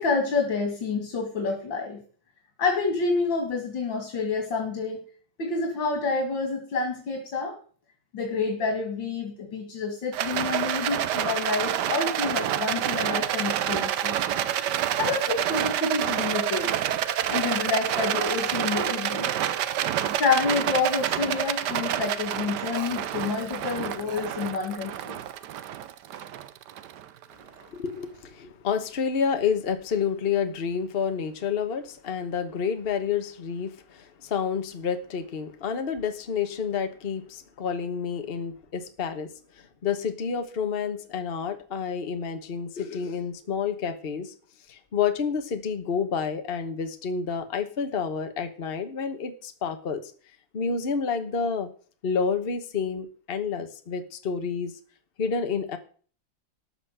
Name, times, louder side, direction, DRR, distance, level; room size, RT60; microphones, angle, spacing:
voice 1, 0.0-2.0 2.6-5.0 5.4-7.6 8.1-14.1 15.0-16.7 17.3-19.3 20.1-25.2, left 4 dB, 85° left, 3 dB, 2.9 m, -28 dB
Rattle, 10.1-27.5, right 11 dB, 70° right, 1.3 m, -28 dB
voice 2, 27.6-39.3 39.8-44.3 44.7-50.1 50.5-51.7 52.0-54.7 55.2-55.8, left 6 dB, 35° left, 7 dB, 1.2 m, -29 dB
13.5 x 5.9 x 8.0 m, 0.43 s
omnidirectional pair, 2.0 m